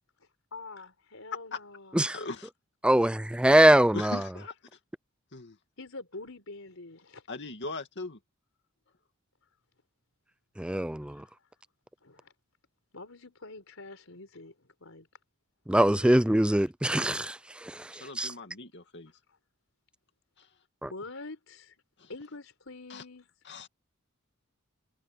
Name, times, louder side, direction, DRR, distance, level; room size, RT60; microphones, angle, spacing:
voice 1, 0.5-2.1 5.8-7.2 11.0-11.3 12.0-12.3 12.9-15.1 20.9-21.8 22.1-23.3, left 3 dB, 75° left, 4.6 m, -45 dB
voice 2, 2.8-4.3 10.6-11.3 15.7-18.3 20.8-20.9, right 1 dB, 5° right, 0.5 m, -23 dB
voice 3, 3.9-4.5 5.3-5.6 7.3-8.2 17.9-19.1 20.4-20.5 22.0-22.1 22.9-23.0 23.5-23.7, left 3 dB, 60° left, 2.5 m, -39 dB
head